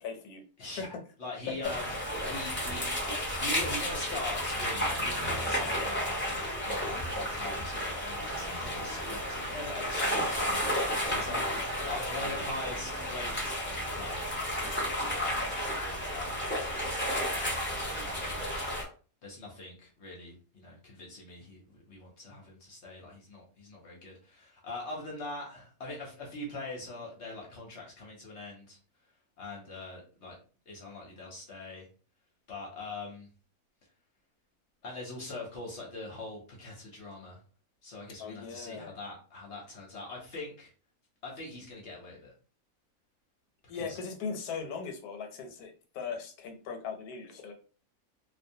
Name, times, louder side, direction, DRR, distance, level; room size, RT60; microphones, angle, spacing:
voice 1, 0.0-0.4 0.8-1.0 1.5-1.7 38.2-38.9 43.7-47.5, left 5 dB, 90° left, 4 dB, 1.1 m, -38 dB
voice 2, 1.2-2.9 3.4-6.1 6.6-10.8 11.0-11.5 11.8-14.2 15.0-15.5 15.8-18.4 19.2-28.8 29.4-30.4 30.7-31.9 32.5-33.3 34.8-37.4 37.8-40.7 41.2-42.3 43.7-44.0, left 2 dB, 55° left, -2 dB, 0.9 m, -42 dB
sound 1, 1.6-18.8, equal, 10° left, 0.5 m, -32 dB
2.4 x 2.2 x 2.6 m, 0.37 s
omnidirectional pair, 1.5 m